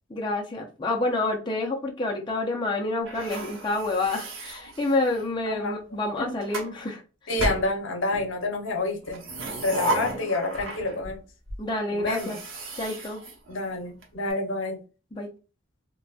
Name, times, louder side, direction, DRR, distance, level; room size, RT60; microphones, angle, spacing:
voice 1, 0.1-7.0 11.6-12.4 12.8-13.2 15.1-15.3, left 2 dB, 25° left, 0.6 m, -28 dB
sound 1, 3.1-5.3 6.1-6.7 7.4-8.3 9.0-11.2 11.5-11.6 12.0-14.0, right 1 dB, 75° right, 1.0 m, -34 dB
voice 2, 5.5-5.8 6.2-6.4 7.3-9.2 9.6-11.2 11.9-12.4 13.5-14.8, left 2 dB, 70° left, 0.8 m, -28 dB
3.9 x 2.2 x 2.3 m
head